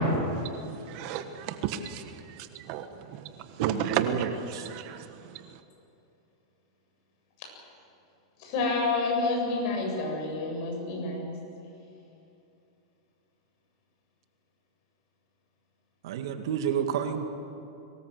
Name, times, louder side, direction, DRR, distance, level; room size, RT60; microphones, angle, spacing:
voice 1, 0.9-2.0 2.3-2.9 3.1-3.2 3.6-5.1, right 9 dB, 45° right, 8 dB, 1.4 m, -33 dB
voice 2, 3.6-4.7 16.0-17.3, right 8 dB, 70° right, 6 dB, 2.1 m, -30 dB
voice 3, 8.4-11.3, left 3 dB, 45° left, 1 dB, 7.8 m, -29 dB
23.0 x 19.5 x 8.0 m, 2.7 s
supercardioid pair, 150°, 3 cm